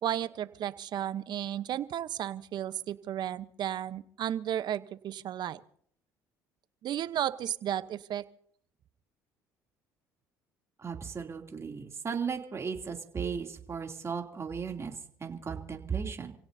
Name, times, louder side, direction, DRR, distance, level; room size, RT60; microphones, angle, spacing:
voice 1, 0.0-5.6 6.8-8.2, right 11 dB, 55° right, 15 dB, 0.9 m, -33 dB
voice 2, 10.8-14.9 15.2-16.3, right 6 dB, 30° right, 3 dB, 2.9 m, -36 dB
29.0 x 17.0 x 2.8 m, 0.64 s
supercardioid pair, 70°, 9 cm